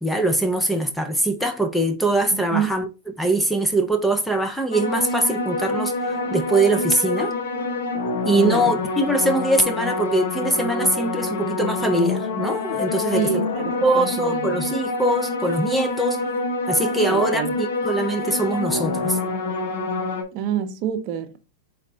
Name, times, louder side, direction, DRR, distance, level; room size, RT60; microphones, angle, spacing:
voice 1, 0.0-2.9 3.2-7.3 8.3-13.4 13.8-16.2 16.7-19.2, right 1 dB, 5° left, 0.5 m, -22 dB
voice 2, 2.3-2.7 8.4-8.7 13.1-14.7 17.1-17.5 20.3-21.4, right 9 dB, 45° right, 0.7 m, -27 dB
sound 1, 4.7-20.2, left 3 dB, 75° left, 1.0 m, -26 dB
4.2 x 3.3 x 3.8 m
hypercardioid pair, 130°, 0 cm